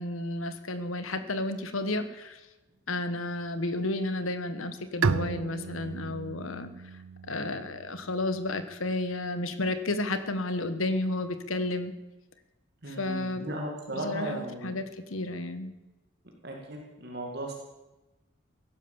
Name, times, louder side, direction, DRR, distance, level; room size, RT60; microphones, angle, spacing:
voice 1, 0.0-2.4 2.9-6.7 7.3-11.9 12.9-13.5 13.9-15.7, left 2 dB, 90° left, 10 dB, 1.4 m, -32 dB
Bowed string instrument, 5.0-8.5, right 5 dB, 90° right, 0.5 m, -33 dB
voice 2, 12.8-14.8 16.4-17.5, right 1 dB, 50° right, 0 dB, 2.3 m, -36 dB
15.5 x 11.5 x 7.1 m, 1.0 s
head